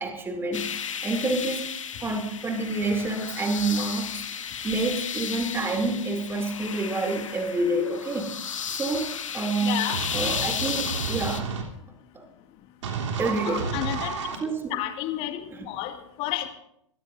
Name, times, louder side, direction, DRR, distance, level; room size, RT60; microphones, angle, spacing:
voice 1, 0.0-1.7 2.0-4.2 4.6-8.3 8.7-11.5 12.1-12.3 13.2-13.7 14.4-14.8 15.5-15.7, right 2 dB, 15° right, 3.1 m, -28 dB
sound 1, 0.5-11.4, left 7 dB, 80° left, 1.6 m, -34 dB
voice 2, 9.6-10.0 13.4-14.1 14.7-15.4 15.7-15.9 16.2-16.5, left 13 dB, 35° left, 2.3 m, -30 dB
sound 2, 9.9-11.6 12.8-14.4, right 5 dB, 65° right, 3.4 m, -31 dB
25.0 x 17.0 x 2.7 m
hypercardioid pair, 120°, 16 cm